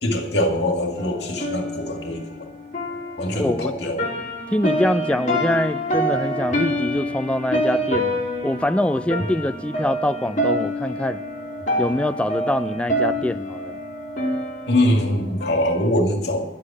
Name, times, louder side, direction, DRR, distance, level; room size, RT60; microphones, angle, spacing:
voice 1, 0.0-2.4 3.2-4.0 14.7-16.5, left 1 dB, 75° left, 3 dB, 2.1 m, -23 dB
sound 1, 1.0-15.9, equal, 40° left, 2.7 m, -27 dB
voice 2, 3.3-3.7 4.5-11.2 11.8-13.8, left 1 dB, 5° left, 11 dB, 0.4 m, -24 dB
11.5 x 8.5 x 8.6 m, 0.90 s
head